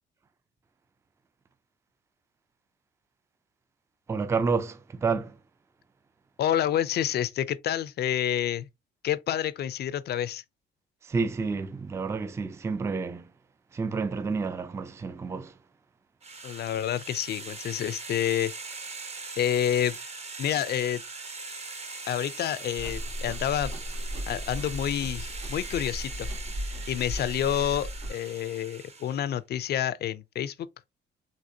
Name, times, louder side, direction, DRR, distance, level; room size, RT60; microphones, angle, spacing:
voice 1, 4.1-5.4 11.0-13.3 13.7-15.5, right 4 dB, 15° right, 0.3 m, -29 dB
voice 2, 6.4-8.7 9.0-10.4 16.4-18.5 19.4-20.0 20.4-21.0 22.1-23.7 24.3-26.3 26.9-30.7, left 10 dB, 55° left, 0.4 m, -28 dB
sound 1, 16.2-29.3, right 4 dB, 30° right, 0.8 m, -41 dB
Livestock farm animals working animals, 22.8-28.1, equal, 80° right, 2.2 m, -36 dB
3.5 x 2.8 x 2.6 m
cardioid pair, 90°, 20 cm